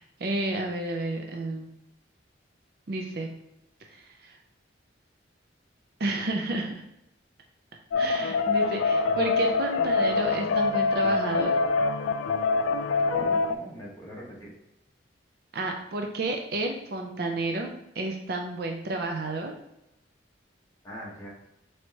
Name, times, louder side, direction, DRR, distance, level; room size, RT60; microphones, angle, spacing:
voice 1, 0.0-1.7 2.9-3.3 4.2-4.3 6.0-6.8 8.0-11.6 15.5-19.5, right 2 dB, 50° right, 3 dB, 0.4 m, -31 dB
sound 1, 7.9-13.6, left 4 dB, 85° left, 0.3 m, -25 dB
voice 2, 13.1-14.5 20.8-21.3, equal, 15° left, -5 dB, 1.1 m, -41 dB
4.4 x 3.2 x 2.8 m, 0.86 s
head